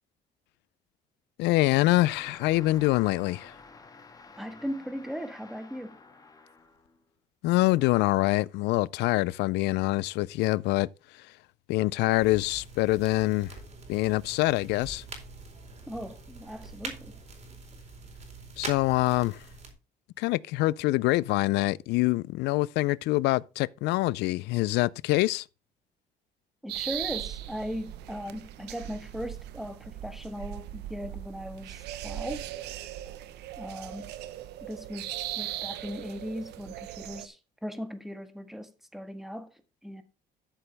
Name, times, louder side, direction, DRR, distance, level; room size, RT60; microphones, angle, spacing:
voice 1, 1.4-3.5 7.4-10.9 11.7-13.6 13.9-15.0 18.6-19.4 20.2-25.4, left 19 dB, 85° left, 0.5 m, -25 dB
sound 1, 2.0-7.0 7.7-8.3, left 4 dB, 20° left, 1.8 m, -51 dB
voice 2, 4.4-6.0 15.9-17.2 26.6-32.6 33.6-34.1 34.6-39.5 39.8-40.0, equal, ahead, 1.5 m, -38 dB
sound 2, 12.2-19.7, right 3 dB, 40° right, 4.2 m, -44 dB
sound 3, 26.7-37.3, right 13 dB, 80° right, 0.9 m, -39 dB
13.0 x 6.9 x 3.4 m
cardioid pair, 110°, 17 cm